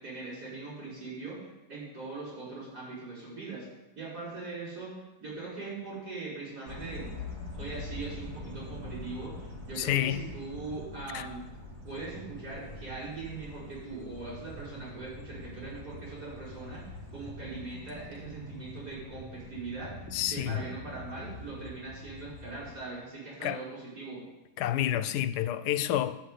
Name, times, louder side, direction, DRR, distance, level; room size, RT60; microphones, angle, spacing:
voice 1, 0.0-1.4 1.7-3.7 4.0-4.9 5.2-7.1 7.6-11.4 11.8-24.2, right 3 dB, 75° right, 5.7 m, -41 dB
sound 1, 6.7-22.7, left 1 dB, 15° right, 1.8 m, -44 dB
voice 2, 9.8-10.2 11.1-11.3 20.1-20.6 23.4-23.6 24.6-26.2, left 12 dB, 90° left, 1.2 m, -29 dB
10.0 x 5.7 x 8.3 m
omnidirectional pair, 1.7 m